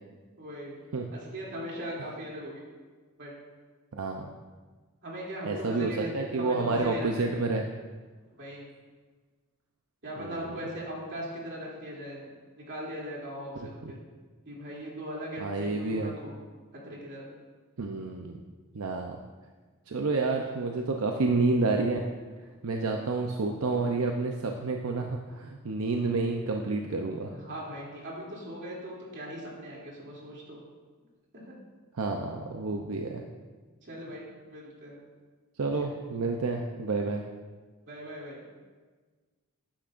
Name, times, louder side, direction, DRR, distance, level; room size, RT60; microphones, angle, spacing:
voice 1, 0.4-0.8 1.1-2.6 3.2-3.3 5.0-6.1 6.4-7.2 8.4-8.6 10.0-12.3 12.6-14.0 14.4-16.3 16.8-17.3 27.2-30.6 31.3-31.5 33.8-35.0 37.9-38.4, equal, 55° right, -4 dB, 2.9 m, -39 dB
voice 2, 3.9-4.3 5.4-7.6 10.2-10.6 13.6-13.9 15.4-16.1 17.8-18.4 18.7-19.2 19.9-22.1 22.6-27.3 31.9-33.2 35.6-37.2, right 3 dB, 85° right, 2 dB, 0.7 m, -29 dB
12.0 x 10.5 x 2.6 m, 1.4 s
head